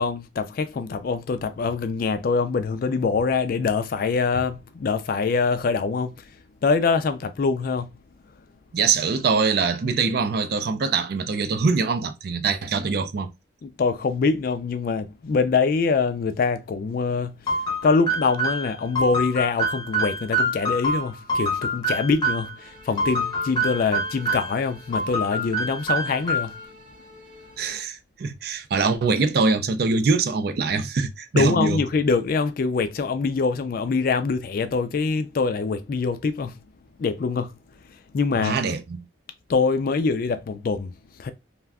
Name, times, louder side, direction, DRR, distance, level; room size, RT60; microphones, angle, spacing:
voice 1, 0.0-6.2 6.6-7.9 13.6-17.4 17.8-26.5 31.3-36.6 37.0-37.5 38.1-38.6 39.5-40.9 41.2-41.3, left 4 dB, 45° left, 0.3 m, -24 dB
voice 2, 8.7-13.3 27.6-31.8 38.4-39.0, right 4 dB, 50° right, 0.4 m, -23 dB
sound 1, 17.5-22.5 23.0-24.6 24.9-26.7, right 1 dB, 20° left, 0.7 m, -26 dB
sound 2, 22.5-27.8, left 1 dB, 25° right, 0.7 m, -49 dB
2.4 x 2.2 x 3.4 m
head